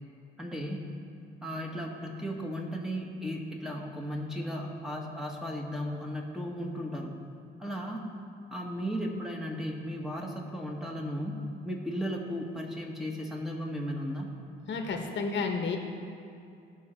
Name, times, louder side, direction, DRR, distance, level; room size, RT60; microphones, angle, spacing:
voice 1, 0.4-0.8 1.4-7.1 7.6-8.1 8.5-11.4 11.6-14.3, equal, ahead, -1 dB, 1.6 m, -35 dB
voice 2, 14.7-15.8, left 4 dB, 65° left, 3 dB, 1.3 m, -31 dB
16.5 x 5.6 x 4.5 m, 2.5 s
cardioid pair, 90°, 20 cm